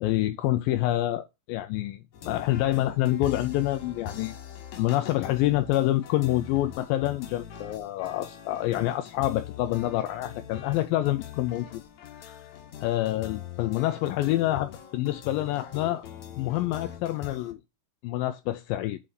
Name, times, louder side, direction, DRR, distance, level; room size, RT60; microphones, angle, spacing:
voice 1, 0.0-4.4 4.8-11.8 12.2-12.5 12.8-16.0 16.4-17.6 18.0-19.0, left 15 dB, 80° left, 2.3 m, -27 dB
sound 1, 2.1-17.5, left 9 dB, 65° left, 2.0 m, -42 dB
7.7 x 3.8 x 5.9 m
omnidirectional pair, 4.3 m